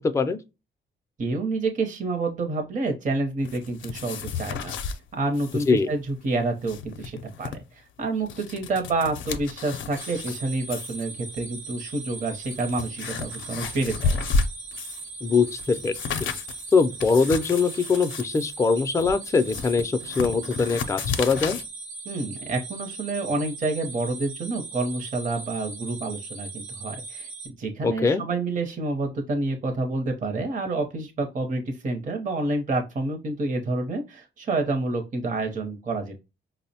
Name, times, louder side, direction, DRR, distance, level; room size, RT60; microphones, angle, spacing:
voice 1, 1.2-14.2 22.1-27.3 27.6-36.2, right 2 dB, 40° right, 0.6 m, -28 dB
sound 1, 3.4-5.0 5.3-5.7 6.0-6.1 6.5-7.6 8.1-10.4 10.7-11.0 11.8-11.9 12.4-15.1 15.4-21.7, left 4 dB, 75° left, 0.5 m, -32 dB
sound 2, 10.0-27.5, right 3 dB, 85° right, 1.0 m, -39 dB
voice 2, 15.2-15.9 16.2-16.3 16.7-21.6 27.8-28.2, left 4 dB, 15° left, 0.3 m, -22 dB
4.9 x 2.0 x 2.7 m
cardioid pair, 95°, 20 cm